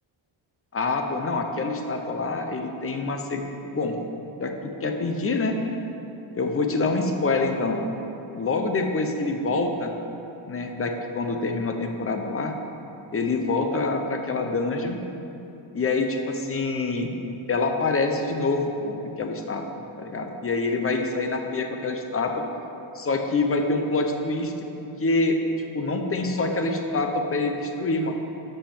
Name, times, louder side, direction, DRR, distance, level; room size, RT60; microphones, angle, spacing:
voice 1, 0.7-3.4 3.7-4.0 4.4-5.6 6.3-7.8 8.3-9.9 10.4-12.5 13.1-15.0 15.7-17.1 17.5-22.4 22.9-25.4 25.7-28.1, left 3 dB, 25° left, 4 dB, 0.7 m, -26 dB
7.3 x 5.6 x 7.1 m, 2.9 s
cardioid pair, 130°, 49 cm